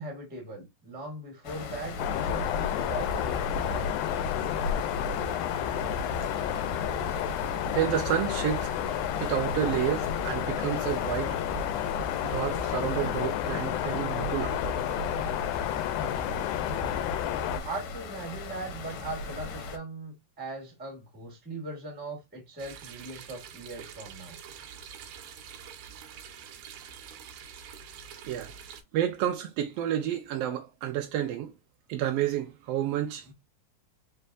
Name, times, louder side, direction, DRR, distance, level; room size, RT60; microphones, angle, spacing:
voice 1, 0.0-4.2 17.4-24.4, right 2 dB, 5° right, 0.9 m, -40 dB
sound 1, 1.4-19.8, left 4 dB, 70° left, 2.0 m, -39 dB
sound 2, 2.0-17.6, left 8 dB, 90° left, 2.1 m, -30 dB
voice 2, 7.7-8.7 9.2-11.4 12.2-14.6 28.2-28.5 28.9-31.5 31.9-33.3, right 11 dB, 90° right, 1.4 m, -30 dB
sound 3, 22.6-28.8, right 8 dB, 70° right, 1.9 m, -46 dB
4.6 x 3.3 x 2.4 m
omnidirectional pair, 3.4 m